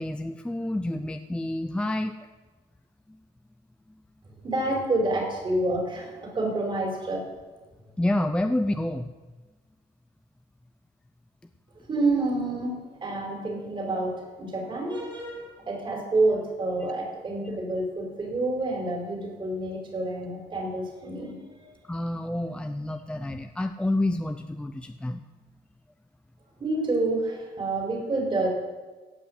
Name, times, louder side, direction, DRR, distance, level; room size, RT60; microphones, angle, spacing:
voice 1, 0.0-2.1 8.0-9.1 21.9-25.2, left 1 dB, 5° left, 7 dB, 0.5 m, -28 dB
voice 2, 4.4-7.2 11.9-21.7 26.6-28.5, right 2 dB, 30° right, 0 dB, 4.6 m, -28 dB
17.0 x 6.2 x 8.0 m, 1.3 s
cardioid pair, 110°, 17 cm